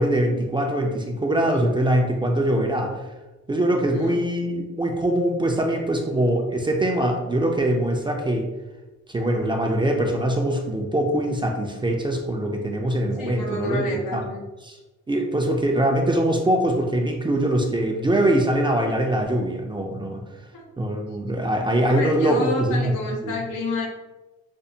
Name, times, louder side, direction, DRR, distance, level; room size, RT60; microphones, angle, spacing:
voice 1, 0.0-2.9 3.5-8.5 9.1-13.8 14.1-14.2 14.6-14.8 15.1-20.2 20.8-22.9 23.2-23.3, right 1 dB, 15° right, 2 dB, 0.4 m, -23 dB
voice 2, 13.2-14.4 20.5-20.7 21.9-23.9, left 2 dB, 85° left, 1 dB, 0.9 m, -29 dB
5.2 x 2.1 x 2.7 m, 1.1 s
cardioid pair, 90°, 30 cm